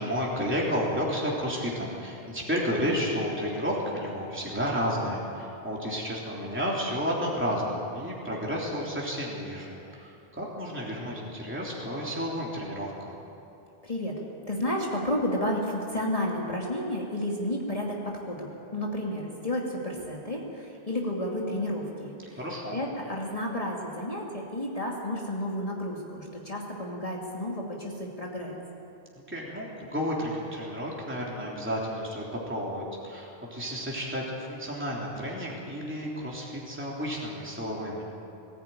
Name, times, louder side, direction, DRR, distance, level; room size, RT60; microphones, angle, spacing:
voice 1, 0.0-13.1 22.4-22.8 29.3-38.1, equal, 10° right, -4 dB, 3.3 m, -31 dB
voice 2, 13.8-14.2 14.5-22.4 22.7-28.6, left 1 dB, 30° left, -3 dB, 2.3 m, -31 dB
20.5 x 15.5 x 9.3 m, 2.8 s
omnidirectional pair, 1.2 m